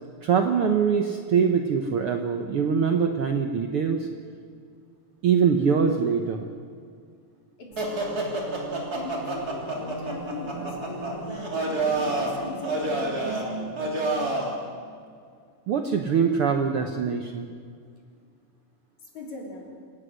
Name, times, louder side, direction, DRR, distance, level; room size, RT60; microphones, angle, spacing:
voice 1, 0.2-4.1 5.2-6.5 15.7-17.5, right 6 dB, 65° right, 5 dB, 1.4 m, -23 dB
voice 2, 7.6-8.3 8.9-13.8 19.0-19.8, left 2 dB, 65° left, -1 dB, 5.0 m, -40 dB
sound 1, 7.8-14.6, right 2 dB, 30° right, 3.4 m, -29 dB
27.5 x 17.5 x 6.4 m, 2.1 s
omnidirectional pair, 3.6 m